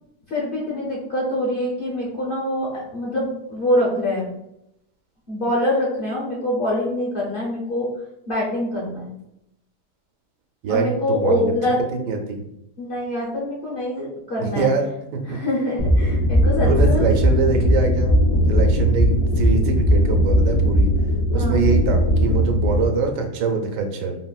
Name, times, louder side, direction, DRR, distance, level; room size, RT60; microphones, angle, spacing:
voice 1, 0.3-4.3 5.3-7.9 8.3-9.1 10.7-11.8 12.8-14.7 15.3-17.1 21.3-21.6, left 1 dB, 45° left, -6 dB, 0.7 m, -24 dB
voice 2, 10.6-11.5 11.9-12.4 14.4-15.4 16.6-18.2 18.5-20.9 21.3-24.2, right 4 dB, 90° right, 4 dB, 1.2 m, -24 dB
sound 1, 15.8-22.8, equal, 85° left, 1.2 m, -18 dB
3.9 x 2.1 x 2.3 m, 0.80 s
omnidirectional pair, 1.8 m